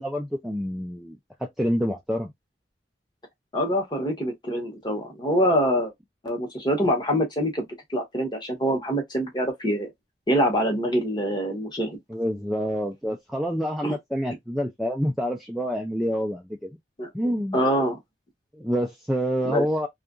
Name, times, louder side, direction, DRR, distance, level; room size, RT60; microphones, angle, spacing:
voice 1, 0.0-2.3 12.1-16.7 17.1-17.6 18.5-19.9, equal, ahead, 0.3 m, -27 dB
voice 2, 3.5-5.9 6.2-7.6 7.9-9.9 10.3-12.0 13.8-14.0 17.0-17.1 17.5-18.0 19.4-19.7, equal, 25° left, 0.9 m, -25 dB
2.7 x 2.4 x 2.4 m
head